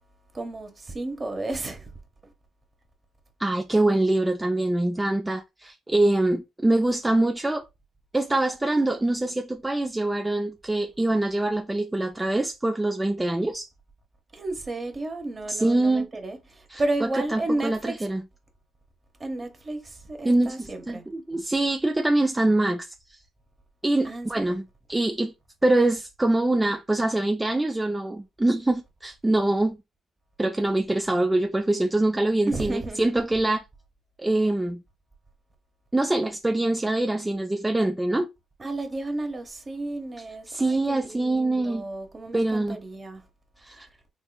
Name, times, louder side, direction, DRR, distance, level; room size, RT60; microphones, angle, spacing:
voice 1, 0.3-1.9 14.3-18.1 19.2-21.0 24.0-24.6 32.5-33.1 38.6-43.2, right 2 dB, 30° right, 0.9 m, -32 dB
voice 2, 3.4-7.6 8.1-13.7 15.5-16.1 16.7-18.2 20.2-22.9 23.8-24.6 24.9-25.3 25.6-29.8 30.4-33.6 34.2-34.8 35.9-38.3 40.5-41.8 42.3-42.8 43.6-43.9, right 2 dB, 15° right, 0.3 m, -24 dB
3.6 x 3.1 x 2.2 m
cardioid pair, 90°, 0 cm